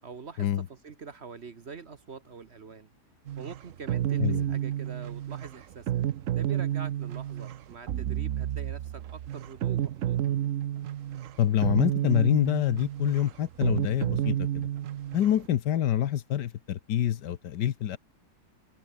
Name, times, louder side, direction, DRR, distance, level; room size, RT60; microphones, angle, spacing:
voice 1, 0.0-2.9 3.4-6.1 6.3-10.2, right 5 dB, 45° right, 1.3 m, -44 dB
sound 1, 3.3-15.5, right 11 dB, 60° right, 0.9 m, -30 dB
voice 2, 11.4-14.7 15.1-18.0, left 11 dB, 80° left, 1.6 m, -26 dB
open air
omnidirectional pair, 1.8 m